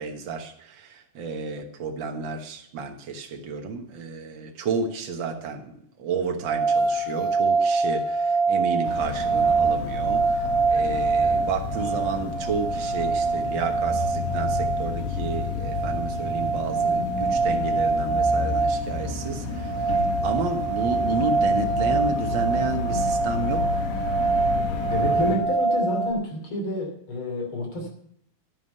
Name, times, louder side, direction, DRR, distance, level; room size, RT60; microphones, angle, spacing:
voice 1, 0.0-19.8 20.2-23.7, right 5 dB, 55° right, 4 dB, 1.3 m, -31 dB
sound 1, 6.5-26.1, right 3 dB, 75° right, 2.4 m, -25 dB
sound 2, 8.8-25.4, left 4 dB, 85° left, 3.3 m, -31 dB
voice 2, 24.9-27.9, equal, 40° left, 3 dB, 3.6 m, -28 dB
10.5 x 9.6 x 5.5 m, 0.71 s
omnidirectional pair, 3.8 m